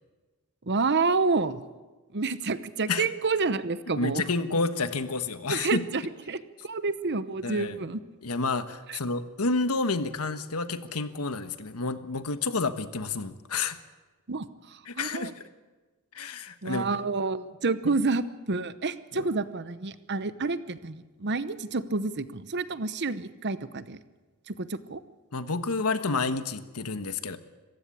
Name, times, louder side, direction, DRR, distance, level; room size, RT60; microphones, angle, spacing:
voice 1, 0.7-1.6 2.1-4.2 5.5-6.0 6.3-8.0 8.9-9.0 14.3-15.3 16.6-24.0 24.5-25.0, right 3 dB, 50° right, 14 dB, 0.9 m, -29 dB
voice 2, 4.0-5.8 7.4-7.8 8.2-13.8 14.9-15.3 16.1-16.9 19.1-19.3 25.3-27.4, left 3 dB, 90° left, 10 dB, 1.3 m, -29 dB
26.0 x 15.0 x 8.6 m, 1.3 s
head